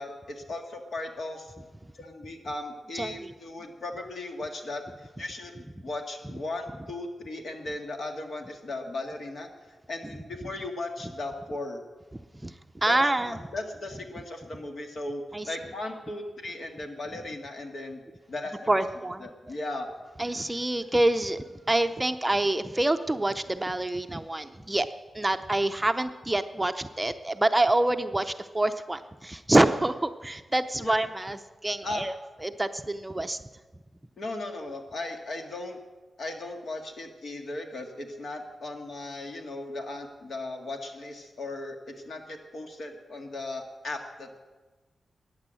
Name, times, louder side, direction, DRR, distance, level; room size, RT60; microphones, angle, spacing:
voice 1, 0.0-1.5 1.9-9.5 9.9-11.8 12.8-18.0 18.3-18.7 19.2-19.9 30.8-30.9 31.8-32.1 34.2-35.8 36.2-44.4, left 2 dB, 65° left, 3 dB, 2.0 m, -37 dB
voice 2, 2.9-3.3 12.4-12.5 12.8-13.4 15.3-15.5 18.7-19.2 20.2-24.9 25.1-32.1 32.4-33.4, right 1 dB, 15° right, 8 dB, 0.6 m, -26 dB
15.0 x 9.7 x 7.7 m, 1.3 s
wide cardioid pair, 95°, 0 cm